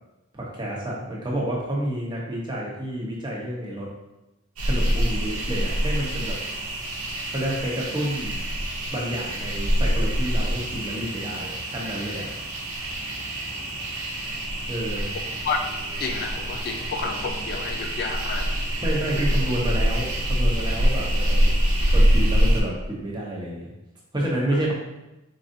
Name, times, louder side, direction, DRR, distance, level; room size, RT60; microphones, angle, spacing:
voice 1, 0.3-3.9 4.6-6.4 7.3-8.4 8.9-12.3 14.7-15.1 18.8-21.5 21.9-23.7 24.1-24.7, right 1 dB, 20° right, -4 dB, 0.8 m, -29 dB
sound 1, 4.6-22.6, equal, 85° right, 0.9 m, -25 dB
voice 2, 16.0-18.5, left 4 dB, 45° left, 5 dB, 0.3 m, -30 dB
4.6 x 3.9 x 2.6 m, 0.98 s
head